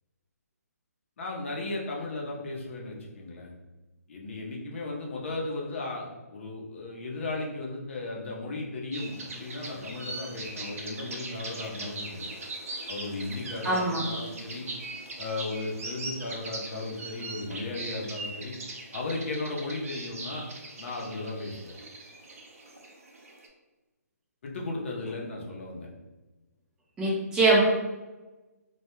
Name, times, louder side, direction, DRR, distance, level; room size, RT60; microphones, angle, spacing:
voice 1, 1.2-3.5 4.1-12.3 12.9-14.7 15.2-18.5 18.9-20.5 20.8-21.7 24.4-25.9, left 2 dB, 45° left, -1 dB, 0.6 m, -35 dB
sound 1, 8.9-23.5, right 2 dB, 55° right, 0.6 m, -40 dB
voice 2, 13.6-14.0 27.0-27.6, right 2 dB, 5° right, -5 dB, 0.4 m, -23 dB
2.2 x 2.1 x 2.9 m, 1.1 s
hypercardioid pair, 150°, 9 cm